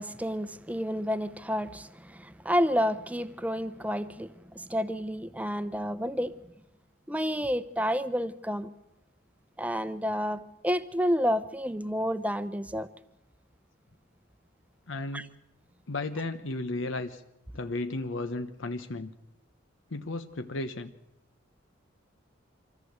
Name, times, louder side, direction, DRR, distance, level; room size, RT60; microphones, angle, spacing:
voice 1, 0.0-6.4 7.1-8.7 9.6-12.9 15.1-15.3, equal, 5° right, 0.8 m, -30 dB
voice 2, 14.9-15.3 15.9-17.2 17.5-19.1 19.9-20.9, left 2 dB, 75° left, 0.9 m, -34 dB
25.5 x 14.5 x 8.0 m
head